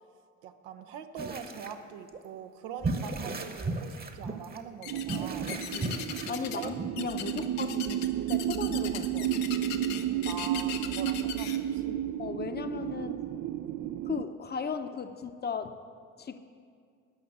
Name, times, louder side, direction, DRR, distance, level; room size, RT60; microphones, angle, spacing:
voice 1, 0.4-5.5 6.6-6.7 7.3-7.5 10.2-12.0, right 8 dB, 75° right, 7 dB, 0.8 m, -43 dB
sound 1, 1.2-1.7 2.1-2.2 2.8-4.6 5.1-6.9, right 3 dB, 25° right, 1.1 m, -35 dB
sound 2, 4.8-5.2 5.5-6.7 7.0-11.6, left 10 dB, 70° left, 1.0 m, -39 dB
sound 3, 4.9-14.2, right 12 dB, 45° right, 0.5 m, -32 dB
voice 2, 5.7-9.3 12.2-13.2 14.0-15.8 16.2-16.4, left 6 dB, 25° left, 8 dB, 0.8 m, -36 dB
13.0 x 5.8 x 8.2 m, 2.3 s
hypercardioid pair, 60°, 37 cm